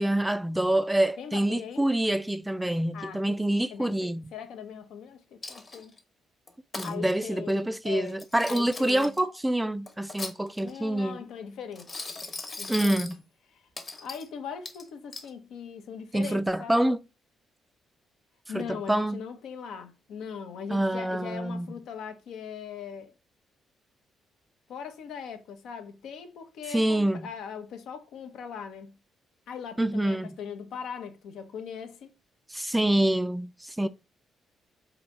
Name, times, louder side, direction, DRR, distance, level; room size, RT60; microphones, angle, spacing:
voice 1, 0.0-4.2 6.8-11.2 12.7-13.2 16.1-17.0 18.5-19.2 20.7-21.7 26.7-27.2 29.8-30.3 32.5-33.9, right 1 dB, 10° right, 0.3 m, -26 dB
voice 2, 1.2-1.9 2.9-3.4 3.7-6.0 6.8-9.1 10.6-12.0 12.6-13.1 13.5-13.6 14.0-16.8 18.5-23.1 24.7-28.9 29.5-32.1 33.8-33.9, left 7 dB, 80° left, 0.8 m, -40 dB
Coin (dropping), 5.4-6.0 6.5-6.9 8.1-9.2 9.9-10.8 11.7-13.2 13.8-14.3 14.6-15.3, left 3 dB, 30° left, 1.0 m, -39 dB
3.9 x 2.7 x 4.5 m
cardioid pair, 90°, 0 cm